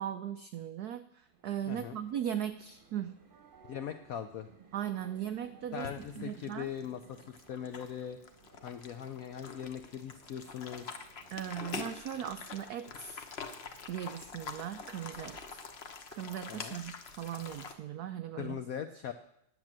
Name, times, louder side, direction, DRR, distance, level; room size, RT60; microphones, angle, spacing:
voice 1, 0.0-3.1 4.7-5.9 6.2-6.7 11.3-13.3 13.9-15.6 16.1-18.6, right 10 dB, 90° right, 10 dB, 0.8 m, -38 dB
sound 1, 1.2-12.0, right 5 dB, 35° right, 0.9 m, -60 dB
voice 2, 1.7-2.0 3.7-4.5 5.7-8.2 8.6-11.0 16.5-16.8 18.4-19.1, left 9 dB, 80° left, 9 dB, 0.7 m, -40 dB
sound 2, 5.7-17.7, left 5 dB, 50° left, 0.8 m, -46 dB
10.5 x 8.0 x 7.4 m, 0.77 s
omnidirectional pair, 2.3 m